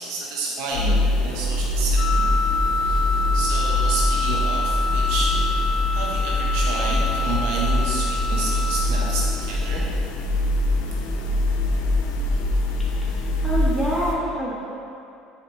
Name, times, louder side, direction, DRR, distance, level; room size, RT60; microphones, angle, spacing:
voice 1, 0.0-2.3 2.8-3.0 3.3-5.4 5.9-9.9, right 3 dB, 80° right, -3 dB, 0.8 m, -30 dB
sound 1, 0.7-14.1, left 1 dB, 90° left, 0.6 m, -23 dB
Wind instrument woodwind instrument, 2.0-8.9, left 4 dB, 45° left, 0.5 m, -27 dB
voice 2, 13.4-14.7, equal, ahead, -8 dB, 1.3 m, -25 dB
6.6 x 5.9 x 3.0 m, 2.5 s
cardioid pair, 130°, 0 cm